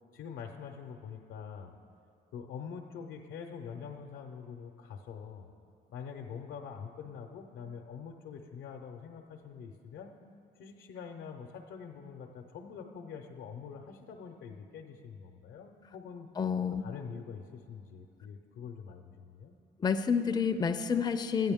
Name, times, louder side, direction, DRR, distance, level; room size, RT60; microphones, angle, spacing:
voice 1, 0.1-1.7 2.3-5.5 5.9-10.1 10.6-16.3 16.8-19.5, left 6 dB, 85° left, 2 dB, 0.7 m, -45 dB
voice 2, 16.4-16.8 19.8-21.5, left 6 dB, 20° left, 7 dB, 0.4 m, -29 dB
13.0 x 9.4 x 3.6 m, 2.7 s
cardioid pair, 90°, 20 cm